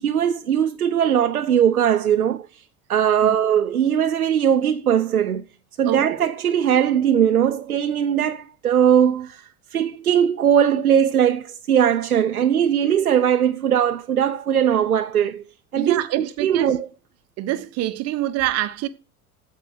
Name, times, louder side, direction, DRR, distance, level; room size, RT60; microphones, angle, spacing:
voice 1, 0.0-2.5 2.9-5.4 5.8-15.4 15.7-16.9, right 9 dB, 85° right, 0.6 m, -20 dB
voice 2, 15.8-16.7 17.4-18.9, right 14 dB, 35° right, 0.9 m, -25 dB
9.1 x 7.5 x 6.3 m
figure-of-eight pair, 75°, 43 cm